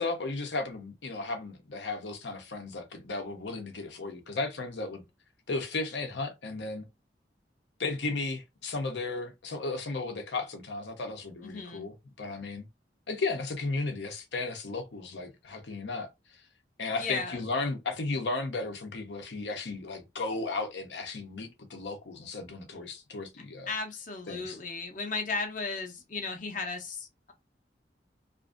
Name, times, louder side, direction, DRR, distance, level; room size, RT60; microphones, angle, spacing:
voice 1, 0.0-5.0 5.5-6.9 7.8-12.7 13.1-16.1 16.8-23.7 24.3-24.6, left 3 dB, 80° left, 0.8 m, -35 dB
voice 2, 11.4-11.9 17.0-17.4 23.7-27.3, left 4 dB, 45° left, 0.7 m, -35 dB
2.6 x 2.5 x 2.4 m
head